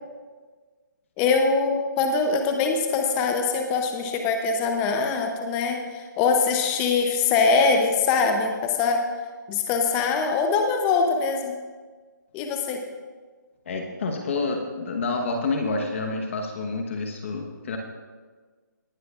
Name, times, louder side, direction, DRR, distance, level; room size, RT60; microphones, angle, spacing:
voice 1, 1.2-9.0 9.5-11.6 12.3-12.8, left 4 dB, 15° left, 4 dB, 0.6 m, -23 dB
voice 2, 13.7-17.8, left 3 dB, 40° left, 2 dB, 1.1 m, -28 dB
18.5 x 11.0 x 2.4 m, 1.4 s
hypercardioid pair, 165°, 11 cm